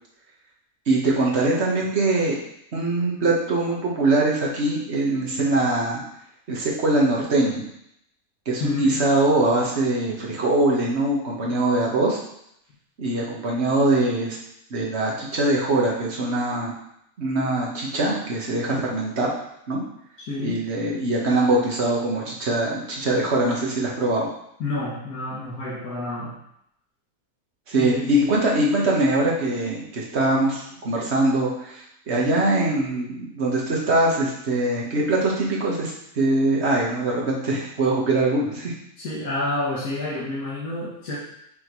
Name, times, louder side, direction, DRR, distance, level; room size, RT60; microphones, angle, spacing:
voice 1, 0.9-2.4 2.7-6.0 6.5-7.6 8.5-12.2 13.0-14.4 14.7-16.7 17.2-19.3 19.7-19.8 20.4-24.3 27.7-38.7, right 2 dB, 45° right, -3 dB, 1.6 m, -22 dB
voice 2, 8.6-9.1 11.4-11.5 20.3-20.6 24.6-26.4 27.8-28.3 39.0-41.2, left 2 dB, 80° left, -7 dB, 1.6 m, -29 dB
5.9 x 3.7 x 4.7 m, 0.75 s
omnidirectional pair, 1.6 m